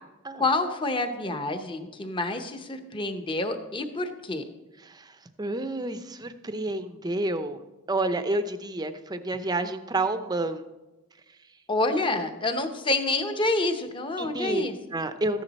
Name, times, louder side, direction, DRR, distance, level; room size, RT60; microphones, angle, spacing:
voice 1, 0.3-4.4 11.7-14.7, left 2 dB, 25° left, 7 dB, 0.9 m, -28 dB
voice 2, 4.8-5.1 5.4-7.6 7.9-10.6 14.2-14.6 14.9-15.4, right 2 dB, 20° right, 10 dB, 0.6 m, -29 dB
14.0 x 10.0 x 4.2 m, 1.0 s
head